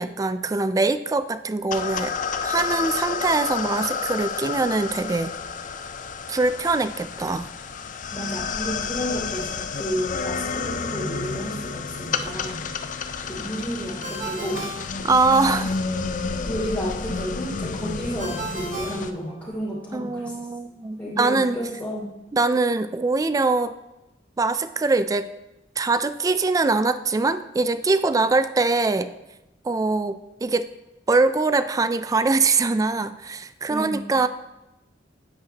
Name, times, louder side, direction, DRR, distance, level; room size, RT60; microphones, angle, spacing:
voice 1, 0.0-2.1 2.4-5.3 6.3-7.5 15.0-15.7 19.9-21.6 22.3-23.8 24.4-25.3 25.8-29.1 29.6-30.7 31.1-34.3, right 3 dB, 20° right, 13 dB, 0.3 m, -23 dB
sound 1, 1.7-19.1, left 5 dB, 45° left, 0.5 m, -30 dB
voice 2, 8.1-12.6 13.2-14.7 16.4-20.4 21.0-22.1 33.7-34.1, equal, 10° left, -7 dB, 2.8 m, -31 dB
Ringtone, 14.0-15.7 18.2-19.9, right 3 dB, 45° right, 1.6 m, -35 dB
9.9 x 8.7 x 2.9 m, 0.97 s
head